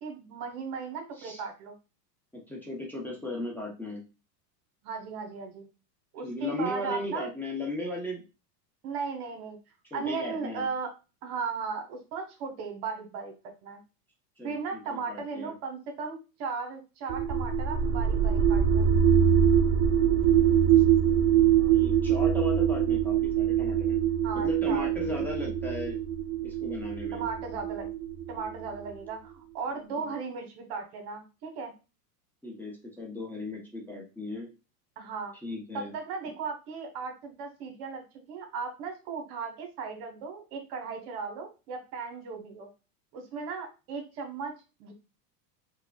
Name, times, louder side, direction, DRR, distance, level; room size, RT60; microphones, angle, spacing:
voice 1, 0.0-1.7 4.8-5.6 6.1-7.3 8.8-9.6 9.9-10.9 11.2-13.3 13.6-13.8 14.4-18.9 24.2-25.5 27.1-27.9 28.3-31.7 35.0-35.3 35.7-42.7 43.1-44.5 44.8-44.9, right 5 dB, 65° right, 4 dB, 1.3 m, -36 dB
voice 2, 2.3-4.0 6.2-8.2 9.9-10.7 14.4-15.5 20.0-24.0 24.3-26.0 26.4-27.2 30.0-30.1 32.4-34.5 35.4-35.9, left 2 dB, 5° left, -3 dB, 0.8 m, -37 dB
sound 1, 17.1-28.9, right 9 dB, 45° right, 0.6 m, -24 dB
4.8 x 2.3 x 2.3 m, 0.30 s
supercardioid pair, 115°, 49 cm